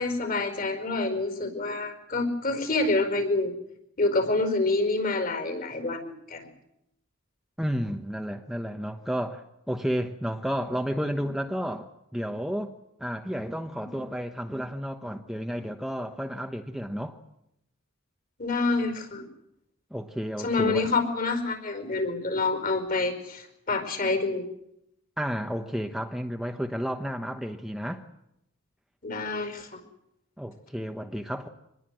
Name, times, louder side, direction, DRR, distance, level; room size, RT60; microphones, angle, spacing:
voice 1, 0.0-3.5 4.0-6.5 18.4-19.2 20.4-24.5 29.0-29.8, left 3 dB, 45° left, 7 dB, 5.0 m, -27 dB
voice 2, 7.6-12.7 13.0-17.2 19.9-20.8 25.2-28.0 30.4-31.5, equal, ahead, 4 dB, 1.1 m, -32 dB
26.0 x 20.5 x 7.8 m, 0.81 s
head